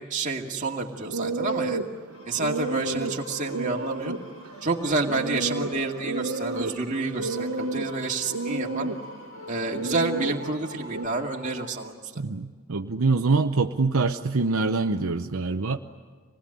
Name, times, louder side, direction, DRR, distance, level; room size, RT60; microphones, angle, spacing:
voice 1, 0.0-1.8 2.3-4.1 4.6-8.9 9.5-12.2, right 3 dB, 35° right, 0 dB, 2.3 m, -29 dB
sound 1, 0.9-11.1, right 2 dB, 90° right, 1.0 m, -32 dB
sound 2, 2.1-11.7, equal, 70° left, 4.2 m, -43 dB
voice 2, 12.2-15.8, right 3 dB, 70° right, 5 dB, 0.7 m, -24 dB
26.5 x 20.0 x 9.9 m, 1.5 s
head